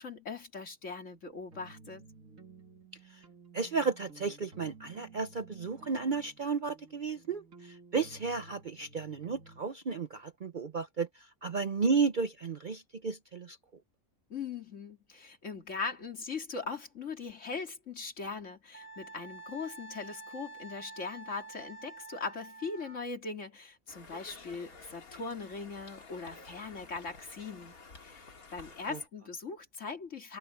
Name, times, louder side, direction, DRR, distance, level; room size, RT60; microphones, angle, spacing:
voice 1, 0.0-2.0 14.3-27.7 28.0-30.4, left 4 dB, 55° left, 2.7 m, -40 dB
sound 1, 1.5-9.6, right 4 dB, 65° right, 2.9 m, -54 dB
voice 2, 3.5-13.6 28.9-29.0, right 4 dB, 45° right, 0.7 m, -33 dB
Wind instrument woodwind instrument, 18.7-23.1, right 3 dB, 10° right, 2.0 m, -48 dB
Conversation, 23.9-29.1, left 4 dB, 80° left, 2.8 m, -52 dB
omnidirectional pair, 1.5 m